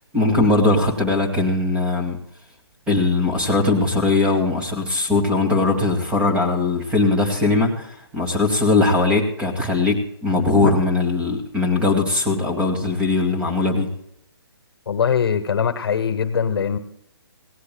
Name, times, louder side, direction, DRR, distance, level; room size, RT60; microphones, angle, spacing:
voice 1, 0.1-2.2 2.9-13.9, left 3 dB, 10° right, 4 dB, 2.1 m, -20 dB
voice 2, 14.9-16.8, left 7 dB, 65° left, 12 dB, 1.1 m, -21 dB
18.0 x 17.5 x 2.2 m, 0.73 s
hypercardioid pair, 155°, 13 cm